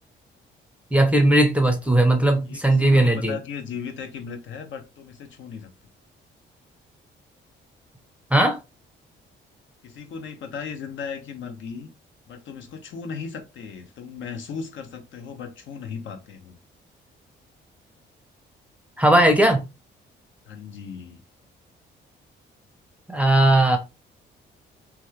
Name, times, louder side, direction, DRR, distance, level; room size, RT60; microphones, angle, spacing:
voice 1, 0.9-3.4 8.3-8.6 19.0-19.6 23.1-23.8, right 1 dB, 5° right, 0.6 m, -18 dB
voice 2, 2.4-5.7 9.8-11.9 12.3-16.6 20.5-21.2, left 6 dB, 70° left, 0.8 m, -36 dB
3.0 x 2.4 x 3.1 m
cardioid pair, 90°, 20 cm